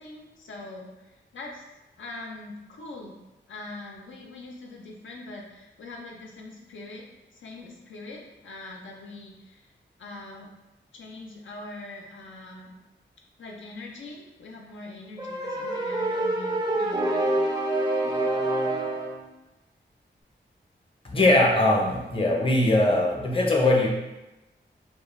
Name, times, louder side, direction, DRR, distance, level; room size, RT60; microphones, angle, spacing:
voice 1, 0.0-1.6 2.0-3.2 3.5-7.1 7.3-9.7 10.0-10.5 10.9-12.7 13.4-17.4, left 2 dB, 80° left, -1 dB, 0.4 m, -42 dB
sound 1, 15.2-19.2, right 1 dB, 20° right, 0.4 m, -26 dB
voice 2, 21.0-23.9, left 1 dB, 30° left, -1 dB, 0.5 m, -21 dB
2.3 x 2.1 x 3.0 m, 1.0 s
cardioid pair, 55°, 19 cm